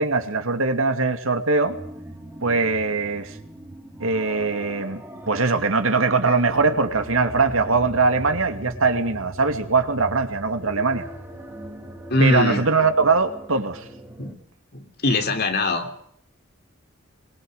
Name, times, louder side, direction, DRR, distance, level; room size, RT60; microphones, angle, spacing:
voice 1, 0.0-1.8 2.4-3.3 4.0-11.1 12.2-13.8, right 4 dB, 75° right, 7 dB, 2.5 m, -21 dB
sound 1, 1.6-14.3, right 1 dB, 10° right, 3.3 m, -40 dB
voice 2, 12.1-12.7 14.2-14.4 14.7-15.9, left 2 dB, 50° left, 6 dB, 3.3 m, -22 dB
23.5 x 21.5 x 6.6 m, 0.70 s
head